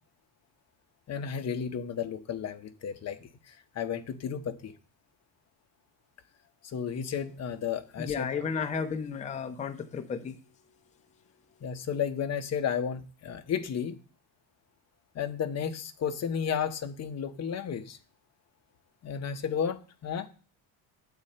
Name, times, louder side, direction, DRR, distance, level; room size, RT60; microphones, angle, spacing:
voice 1, 1.1-3.3 3.7-4.7 6.7-8.3 11.6-14.0 15.1-18.0 19.0-20.3, left 7 dB, 35° left, 7 dB, 0.9 m, -33 dB
voice 2, 8.0-10.4, left 6 dB, 15° left, 7 dB, 0.6 m, -33 dB
9.0 x 4.2 x 6.6 m, 0.38 s
cardioid pair, 135°, 46 cm